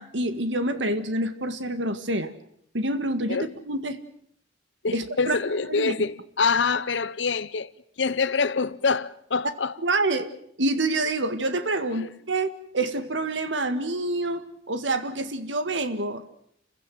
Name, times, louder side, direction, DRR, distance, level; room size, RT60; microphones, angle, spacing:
voice 1, 0.0-2.3 2.7-4.0 4.9-5.4 5.7-6.0 9.8-10.3 10.6-12.5 12.7-16.3, right 2 dB, 75° right, 1.9 m, -27 dB
voice 2, 4.8-7.7 8.0-9.8 11.9-12.1, left 4 dB, 70° left, 0.9 m, -25 dB
29.0 x 15.5 x 7.8 m
head